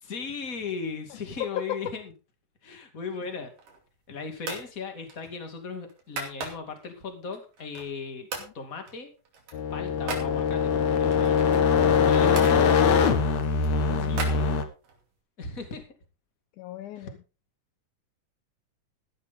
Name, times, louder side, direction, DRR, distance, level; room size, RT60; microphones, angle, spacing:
voice 1, 0.0-2.1 2.6-3.5 4.1-8.2 8.5-9.1 9.7-11.4 12.0-12.8 13.8-14.6 15.4-15.9 17.0-17.1, left 5 dB, 25° left, 5 dB, 2.6 m, -37 dB
voice 2, 1.4-1.8 13.9-14.7 16.6-17.2, left 13 dB, 75° left, 10 dB, 2.1 m, -36 dB
sound 1, 3.4-4.0 4.4-4.7 5.1-6.9 7.3-8.0 8.3-8.6 8.9-10.3 11.1-12.6 13.1-15.0, right 4 dB, 75° right, 4.3 m, -38 dB
sound 2, 9.5-14.6, left 6 dB, 60° left, 2.5 m, -22 dB
14.5 x 11.5 x 3.8 m, 0.32 s
omnidirectional pair, 3.8 m